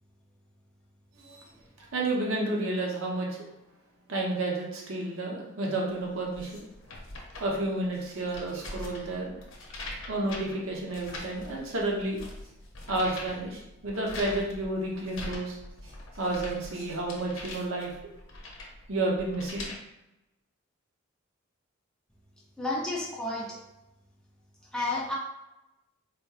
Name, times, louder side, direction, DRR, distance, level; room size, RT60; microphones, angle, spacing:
voice 1, 1.8-3.4 4.1-6.5 7.4-9.4 10.1-12.2 12.9-15.6 16.2-17.9 18.9-19.7, right 2 dB, 90° right, -2 dB, 0.9 m, -31 dB
sound 1, 6.0-19.8, left 2 dB, 70° left, 0.8 m, -43 dB
voice 2, 22.6-23.6 24.7-25.1, left 2 dB, 5° left, -5 dB, 0.7 m, -31 dB
4.2 x 2.8 x 2.4 m, 0.93 s
head